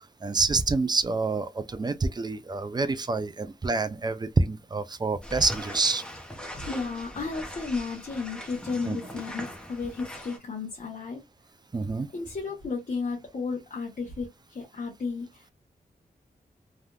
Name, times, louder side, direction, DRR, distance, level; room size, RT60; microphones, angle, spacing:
voice 1, 0.2-6.0 8.8-9.2 11.7-12.1, right 3 dB, 25° right, 0.4 m, -27 dB
sound 1, 5.2-10.4, equal, 5° left, 0.9 m, -40 dB
voice 2, 6.6-11.2 12.1-15.5, left 4 dB, 55° left, 1.0 m, -33 dB
3.4 x 2.4 x 2.3 m
wide cardioid pair, 100°, 16 cm